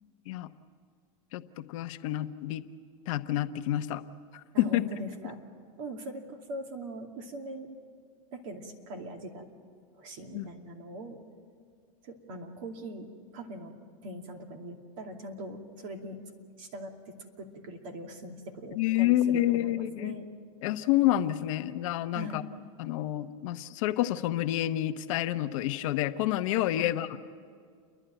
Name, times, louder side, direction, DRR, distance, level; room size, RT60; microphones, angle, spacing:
voice 1, 1.3-2.6 3.1-4.0 4.3-4.8 10.3-10.5 18.8-20.2 20.6-22.4 22.8-27.1, left 14 dB, 65° left, 10 dB, 0.9 m, -28 dB
voice 2, 4.5-5.4 5.8-7.7 8.3-9.4 9.9-11.2 12.0-13.1 13.3-13.8 14.0-16.2 16.6-20.3 22.1-22.4 26.7-27.0, right 1 dB, 65° right, 3 dB, 2.6 m, -41 dB
29.5 x 11.0 x 9.1 m, 2.1 s
supercardioid pair, 120°, 18 cm